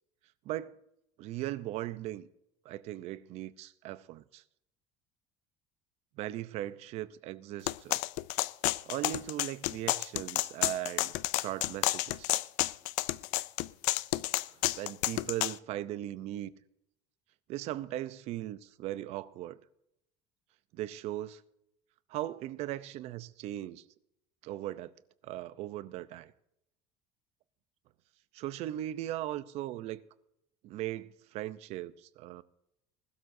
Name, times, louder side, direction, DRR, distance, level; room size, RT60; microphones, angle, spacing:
voice 1, 0.4-0.8 1.2-2.3 2.6-4.4 6.2-8.0 8.9-12.3 14.8-16.5 17.5-19.6 20.7-21.4 22.1-23.8 24.4-24.9 25.2-26.3 28.3-30.0 30.6-32.4, right 14 dB, 50° right, 0.6 m, -38 dB
sound 1, 7.7-15.6, left 20 dB, 70° left, 0.4 m, -30 dB
20.0 x 12.5 x 2.7 m
cardioid pair, 170°, 14 cm